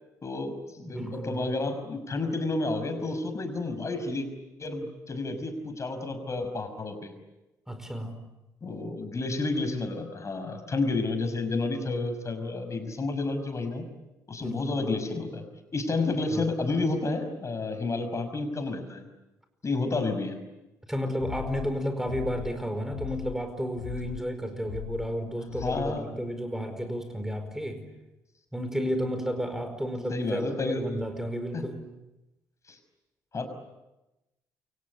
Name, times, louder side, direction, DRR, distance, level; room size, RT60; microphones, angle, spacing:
voice 1, 0.2-4.3 4.6-7.1 8.6-13.9 14.3-15.4 15.7-19.0 19.6-20.4 25.6-26.0 30.1-30.9 31.5-31.7 32.7-32.8 33.3-33.5, left 3 dB, 35° left, 8 dB, 5.7 m, -30 dB
voice 2, 0.8-1.4 7.7-8.2 14.4-14.8 16.3-16.5 20.9-27.8 28.5-31.9, equal, 5° right, 8 dB, 5.0 m, -32 dB
sound 1, 21.2-21.7 22.1-22.6 22.9-23.4 23.8-24.2 24.6-25.1 25.5-25.9, left 13 dB, 70° left, 1.4 m, -38 dB
29.0 x 24.5 x 8.4 m, 0.99 s
hypercardioid pair, 50°, 9 cm